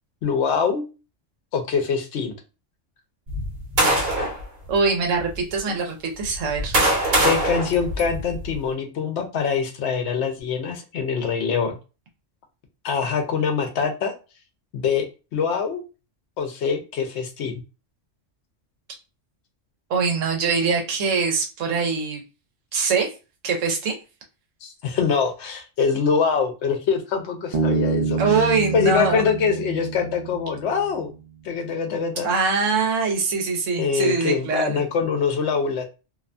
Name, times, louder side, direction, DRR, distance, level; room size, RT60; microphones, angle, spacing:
voice 1, 0.2-0.8 1.5-2.3 5.7-5.8 7.2-11.8 12.8-14.1 14.7-15.0 15.3-15.8 16.4-17.5 24.6-28.4 28.7-31.1 31.4-32.3 33.8-35.9, left 6 dB, 70° left, 5 dB, 0.8 m, -24 dB
sound 1, 3.3-4.4 5.2-5.3 6.2-8.6, right 1 dB, 55° right, 1.1 m, -22 dB
voice 2, 4.7-7.0 19.9-22.2 22.7-23.1 23.4-23.9 28.2-29.2 32.2-34.8, right 4 dB, 90° right, 3 dB, 1.1 m, -23 dB
Bass guitar, 27.5-31.1, right 5 dB, 70° right, 0.4 m, -27 dB
2.6 x 2.1 x 2.5 m, 0.31 s
omnidirectional pair, 1.3 m